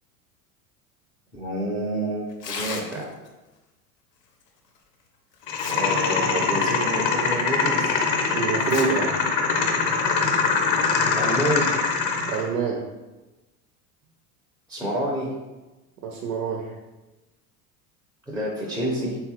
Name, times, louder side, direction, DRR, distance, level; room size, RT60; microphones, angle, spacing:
voice 1, 1.3-3.1 5.7-7.9 11.1-11.7 14.7-15.3 18.3-19.2, right 1 dB, ahead, -4 dB, 0.4 m, -28 dB
Tearing, 2.3-3.3 4.8-4.9 5.3-6.1 6.4-6.5 7.2-7.3 8.5-8.9 9.3-9.4 10.2-10.5, left 5 dB, 90° left, 0.6 m, -35 dB
sound 1, 5.5-12.5, left 5 dB, 40° left, 0.7 m, -23 dB
voice 2, 8.3-9.1 12.3-12.8 16.0-16.7, right 5 dB, 75° right, 0 dB, 0.7 m, -26 dB
3.4 x 2.4 x 3.0 m, 1.1 s
hypercardioid pair, 90°, 48 cm